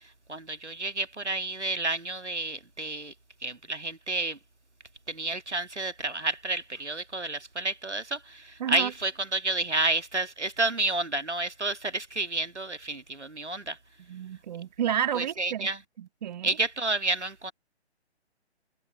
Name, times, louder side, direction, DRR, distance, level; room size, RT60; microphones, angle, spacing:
voice 1, 0.3-3.1 3.4-4.4 5.1-13.8 15.1-15.8 16.4-17.5, right 2 dB, 90° right, 1.9 m, -30 dB
voice 2, 8.6-8.9 14.1-15.7 16.0-16.5, right 9 dB, 40° right, 1.7 m, -31 dB
figure-of-eight pair, 140°, 34 cm